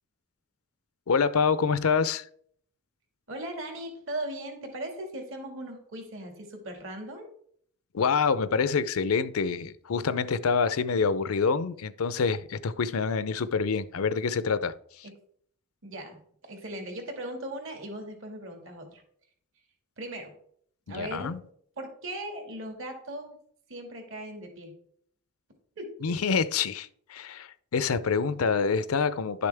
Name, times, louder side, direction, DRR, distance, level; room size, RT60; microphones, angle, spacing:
voice 1, 1.1-2.3 7.9-15.1 20.9-21.4 26.0-29.5, left 5 dB, 85° left, 0.5 m, -26 dB
voice 2, 3.3-7.3 15.0-15.1 15.8-16.2 16.5-19.0 20.0-20.4 20.9-21.3 21.8-23.4 23.7-24.7 25.8-26.1, right 1 dB, 65° right, 2.0 m, -38 dB
11.0 x 6.7 x 3.4 m
head